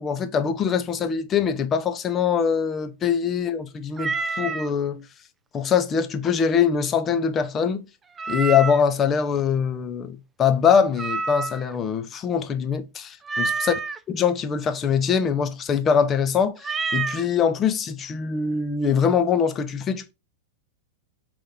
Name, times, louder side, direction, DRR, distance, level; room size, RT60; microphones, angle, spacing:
voice 1, 0.0-5.0 5.5-7.8 8.3-13.7 14.1-20.1, left 7 dB, 30° left, 0.7 m, -23 dB
Meow, 4.0-4.7 8.2-9.0 11.0-11.8 13.3-14.0 16.6-17.3, right 4 dB, 20° right, 0.4 m, -28 dB
5.3 x 2.6 x 3.6 m
hypercardioid pair, 100°, 0 cm